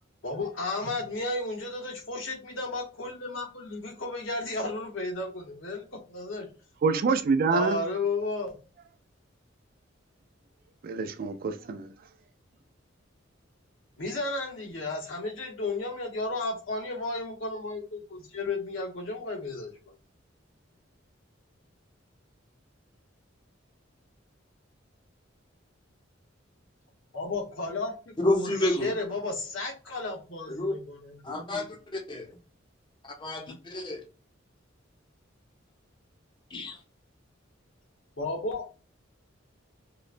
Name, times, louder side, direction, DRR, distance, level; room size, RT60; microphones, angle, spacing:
voice 1, 0.2-6.5 7.5-8.6 14.0-19.8 27.1-27.9 28.3-31.2 38.2-38.7, left 2 dB, 85° left, 1.0 m, -33 dB
voice 2, 6.8-7.8 10.8-11.9, right 4 dB, 50° right, 0.3 m, -26 dB
voice 3, 28.2-28.9 30.5-30.7 31.2-32.3 33.2-34.0 36.5-36.8, left 1 dB, 25° left, 0.6 m, -29 dB
2.9 x 2.1 x 2.4 m
head